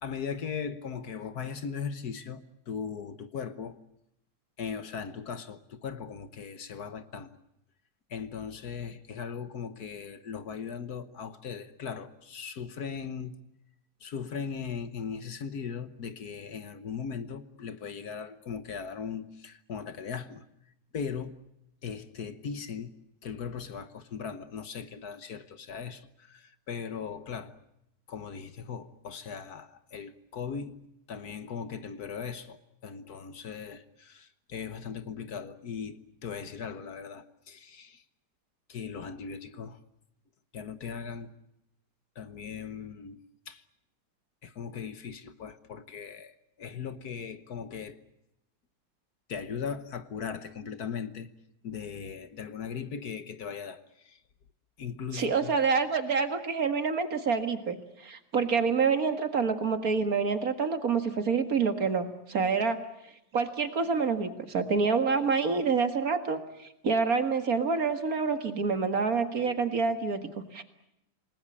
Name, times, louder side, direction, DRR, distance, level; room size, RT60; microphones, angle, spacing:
voice 1, 0.0-3.8 4.6-7.4 8.1-13.3 14.0-20.4 20.9-21.3 21.8-22.9 23.2-27.6 28.1-30.8 31.1-38.0 38.7-39.8 40.5-41.3 42.1-43.2 43.5-43.6 44.4-48.0 49.3-51.3 51.6-54.2 54.8-55.5, left 6 dB, 60° left, 1.6 m, -38 dB
voice 2, 55.1-62.8 63.3-66.4 66.8-70.6, right 5 dB, 50° right, 2.2 m, -27 dB
28.0 x 20.0 x 8.5 m
omnidirectional pair, 1.9 m